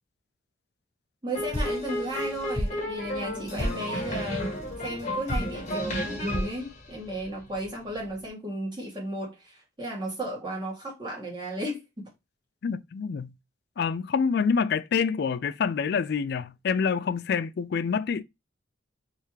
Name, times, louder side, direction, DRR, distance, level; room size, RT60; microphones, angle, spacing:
voice 1, 1.2-12.1, right 1 dB, 20° right, 1.6 m, -34 dB
sound 1, 1.3-7.7, equal, 35° left, 1.1 m, -31 dB
voice 2, 12.6-13.3 13.8-18.2, left 6 dB, 50° left, 0.3 m, -27 dB
3.5 x 3.3 x 3.1 m
head